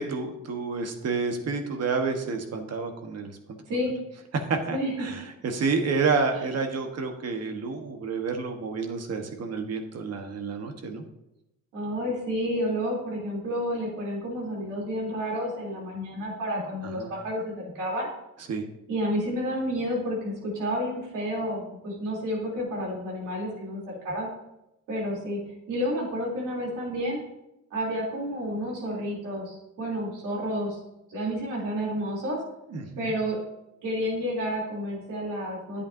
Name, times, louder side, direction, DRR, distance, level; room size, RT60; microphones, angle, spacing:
voice 1, 0.0-3.4 4.3-11.0 16.8-17.1 18.5-18.6 32.7-33.1, right 4 dB, 55° right, 4 dB, 1.4 m, -29 dB
voice 2, 11.7-18.1 18.9-24.3 24.9-25.4 25.7-27.2 27.7-30.8 31.1-32.4 33.0-33.4 33.8-35.8, equal, 90° right, -4 dB, 3.5 m, -30 dB
10.5 x 8.4 x 2.8 m, 0.88 s
cardioid pair, 90°, 30 cm